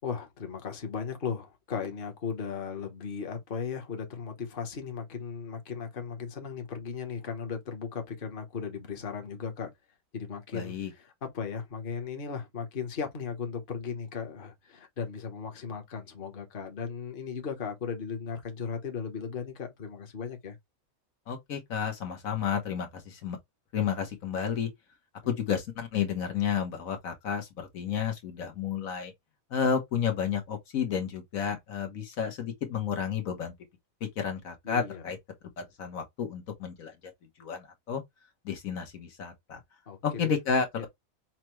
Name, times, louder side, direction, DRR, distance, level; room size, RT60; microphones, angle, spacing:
voice 1, 0.0-9.7 10.1-20.6 34.6-35.0 39.9-40.3 40.8-40.9, left 6 dB, 40° left, 1.1 m, -36 dB
voice 2, 10.5-10.9 21.3-23.4 23.7-24.7 25.3-29.1 29.5-33.5 34.2-35.2 35.6-36.9 37.4-38.0 38.4-39.6 40.0-40.9, left 7 dB, 75° left, 1.5 m, -31 dB
5.8 x 2.2 x 3.0 m
omnidirectional pair, 1.4 m